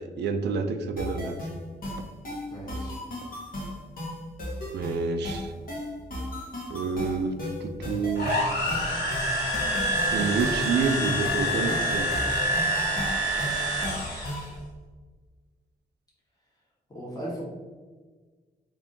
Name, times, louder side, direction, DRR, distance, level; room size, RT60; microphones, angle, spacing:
voice 1, 0.0-1.5 4.7-5.5 6.7-8.4 10.1-12.1, right 4 dB, 90° right, 6 dB, 0.4 m, -28 dB
sound 1, 1.0-14.6, left 1 dB, 55° left, 1.3 m, -35 dB
voice 2, 2.5-3.0 16.9-17.4, equal, 20° left, -6 dB, 1.4 m, -37 dB
sound 2, 8.2-14.5, equal, 80° left, 1.5 m, -27 dB
3.5 x 2.7 x 3.8 m, 1.4 s
cardioid pair, 80°, 17 cm